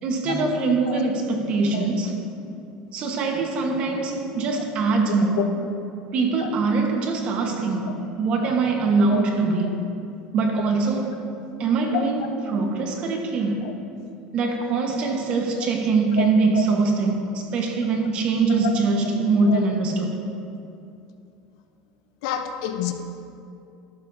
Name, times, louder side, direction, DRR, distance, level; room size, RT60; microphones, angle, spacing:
voice 1, 0.0-2.2 2.9-5.5 6.1-9.8 10.3-11.2 11.6-13.7 14.3-20.1, right 3 dB, 40° right, 2 dB, 1.3 m, -23 dB
voice 2, 5.1-5.5 6.4-6.5 8.4-8.5 9.1-9.2 11.9-12.3 13.6-13.7 16.2-16.6 18.5-18.8 19.5-19.6 22.2-22.9, left 10 dB, 70° left, 7 dB, 0.9 m, -29 dB
13.0 x 12.0 x 2.8 m, 2.6 s
supercardioid pair, 155°, 3 cm